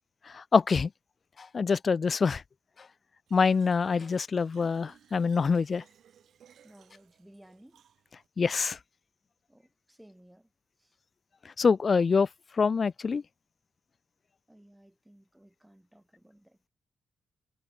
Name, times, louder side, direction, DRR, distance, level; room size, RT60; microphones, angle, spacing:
voice 1, 0.3-0.9 1.5-2.4 3.3-5.8 8.4-8.8 11.6-12.3 12.6-13.2, left 5 dB, 45° left, 0.3 m, -25 dB
Fill (with liquid), 3.3-8.3, right 9 dB, 75° right, 7.9 m, -61 dB
voice 2, 6.6-7.8 9.5-10.5 10.8-10.9 14.5-16.7, right 1 dB, 5° right, 5.2 m, -57 dB
cardioid pair, 80°, 0 cm